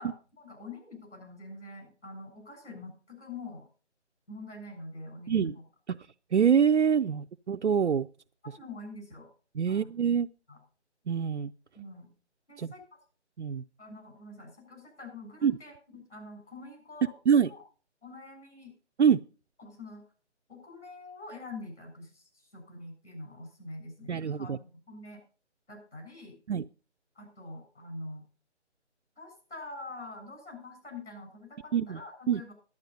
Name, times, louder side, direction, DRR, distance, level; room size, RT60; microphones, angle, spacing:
voice 1, 0.0-3.7 4.3-5.6 8.5-9.3 9.7-9.9 10.5-10.6 11.7-12.1 12.5-13.0 13.8-17.1 17.4-17.6 18.0-18.8 19.6-20.0 20.5-25.2 25.7-26.4 27.1-28.2 29.2-32.5, left 2 dB, 75° left, 3 dB, 6.8 m, -45 dB
voice 2, 6.3-8.1 9.6-10.3 11.1-11.5 12.6-12.7 13.4-13.6 15.4-15.6 17.3-17.5 19.0-19.2 24.1-24.6 26.5-26.6 31.7-32.0 32.3-32.4, right 7 dB, 70° right, 8 dB, 0.5 m, -25 dB
11.0 x 9.2 x 5.3 m, 0.37 s
figure-of-eight pair, 160°, 35 cm